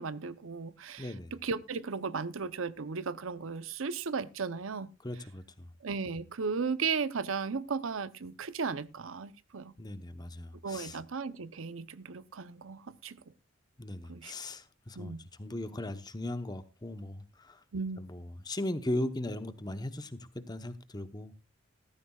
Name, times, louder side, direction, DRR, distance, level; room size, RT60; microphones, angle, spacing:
voice 1, 0.0-4.9 5.8-9.7 10.6-13.2 14.1-14.3 15.0-15.2 17.7-18.1, right 5 dB, 85° right, 0.7 m, -35 dB
voice 2, 1.0-1.3 5.0-5.7 9.8-11.0 13.8-17.6 18.0-21.3, left 1 dB, 20° left, 0.9 m, -38 dB
16.0 x 14.0 x 2.4 m
head